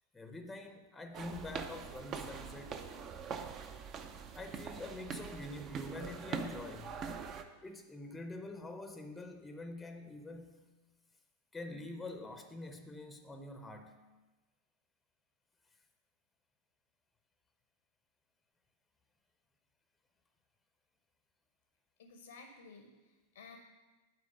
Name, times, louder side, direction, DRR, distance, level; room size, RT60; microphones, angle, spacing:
voice 1, 0.1-2.8 4.3-7.0 7.6-10.7 11.5-14.0, left 2 dB, 10° left, 6 dB, 0.7 m, -46 dB
sound 1, 1.1-7.4, right 6 dB, 30° right, 0.6 m, -43 dB
voice 2, 22.0-23.6, left 4 dB, 65° left, 5 dB, 0.7 m, -54 dB
8.4 x 4.6 x 6.3 m, 1.2 s
figure-of-eight pair, 90°, 0 cm